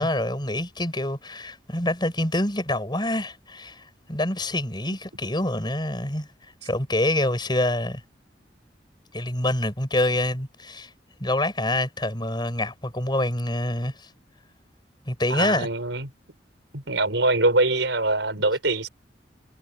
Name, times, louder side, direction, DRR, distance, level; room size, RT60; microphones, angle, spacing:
voice 1, 0.0-6.3 6.6-8.0 9.1-10.9 11.2-14.1 15.1-15.7, left 1 dB, 25° left, 6.3 m, -26 dB
voice 2, 15.3-16.1 16.7-18.9, right 2 dB, 85° right, 5.3 m, -23 dB
head